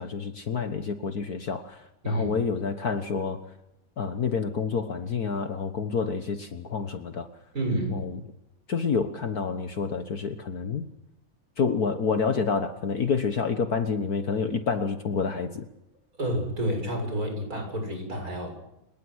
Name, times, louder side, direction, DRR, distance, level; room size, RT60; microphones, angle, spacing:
voice 1, 0.0-3.4 4.0-7.3 7.9-8.2 8.7-10.9 11.6-15.7, left 5 dB, 50° left, 8 dB, 1.7 m, -28 dB
voice 2, 7.5-8.0 16.2-18.6, right 1 dB, 45° right, 3 dB, 7.7 m, -29 dB
30.0 x 19.0 x 6.4 m, 0.88 s
omnidirectional pair, 2.1 m